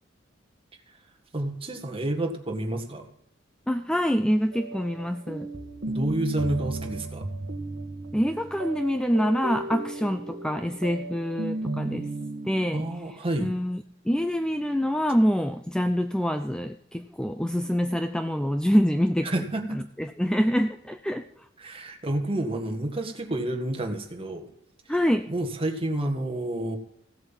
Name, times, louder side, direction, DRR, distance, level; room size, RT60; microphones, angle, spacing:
voice 1, 1.3-3.1 5.9-7.2 12.7-13.5 19.2-19.8 21.6-24.5 25.3-26.8, right 1 dB, 30° right, 3 dB, 1.8 m, -29 dB
voice 2, 3.7-5.5 8.1-12.1 12.4-12.9 13.4-19.3 19.7-21.2 24.9-25.3, equal, 5° left, 8 dB, 0.4 m, -26 dB
sound 1, 4.5-12.9, right 2 dB, 55° right, 1.4 m, -35 dB
16.0 x 8.0 x 7.4 m, 0.67 s
head